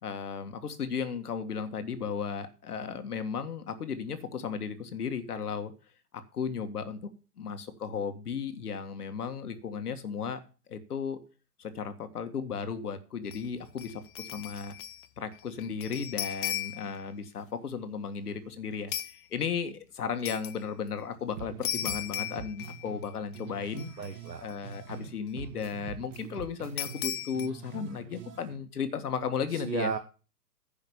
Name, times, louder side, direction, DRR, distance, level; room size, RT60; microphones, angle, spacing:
voice 1, 0.0-5.7 6.1-7.1 7.4-10.4 10.7-11.2 11.6-14.7 15.2-23.9 24.4-29.9, left 6 dB, 65° left, 9 dB, 1.8 m, -35 dB
sound 1, 13.3-13.5 13.8-15.1 15.3-17.0 18.9-19.2 20.2-20.6 21.6-23.1 23.3-23.4 23.8-24.5 26.8-27.5, left 13 dB, 30° left, 0.8 m, -36 dB
sound 2, 21.4-25.1 25.4-28.6, right 7 dB, 50° right, 2.2 m, -44 dB
voice 2, 24.0-24.5 29.5-30.0, right 5 dB, 90° right, 8 dB, 1.3 m, -34 dB
10.5 x 5.7 x 7.1 m, 0.35 s
figure-of-eight pair, 125°, 49 cm